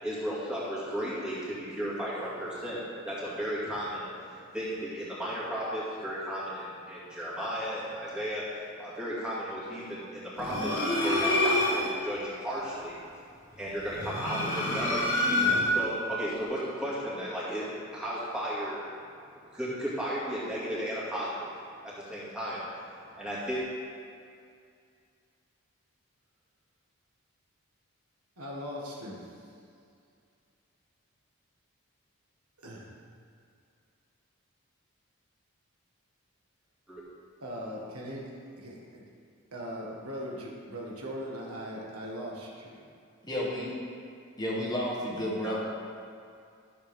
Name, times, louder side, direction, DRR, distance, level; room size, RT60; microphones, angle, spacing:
voice 1, 0.0-4.1 4.5-8.4 8.8-13.0 13.6-15.1 15.7-18.8 19.5-21.5 21.8-22.7 23.1-23.6 36.9-37.0 45.4-45.6, equal, 5° right, -9 dB, 2.3 m, -34 dB
sound 1, 10.4-12.0 13.8-15.9, left 1 dB, 80° left, 2.0 m, -27 dB
voice 2, 28.4-29.4 32.6-32.9 37.4-38.3 38.6-39.0 39.5-42.7, equal, 85° right, -3 dB, 1.7 m, -39 dB
voice 3, 43.2-43.8 44.4-45.6, left 1 dB, 20° left, -4 dB, 1.3 m, -31 dB
13.0 x 6.8 x 3.7 m, 2.3 s
head